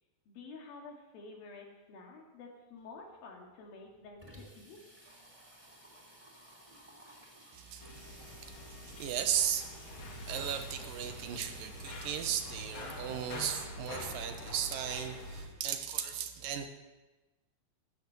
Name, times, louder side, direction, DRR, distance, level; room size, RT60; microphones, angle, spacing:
voice 1, 0.3-4.8, left 3 dB, 80° left, 0 dB, 3.8 m, -50 dB
Water tap faucet / Sink (filling or washing), 2.8-2.9 3.2-3.3 3.5-13.4, right 1 dB, 10° right, 2.6 m, -56 dB
voice 2, 7.5-9.7 10.2-16.7, right 9 dB, 80° right, 7 dB, 2.6 m, -36 dB
sound 1, 7.8-15.5, left 1 dB, 40° left, 2.3 m, -45 dB
13.0 x 9.4 x 6.9 m, 1.1 s
omnidirectional pair, 4.1 m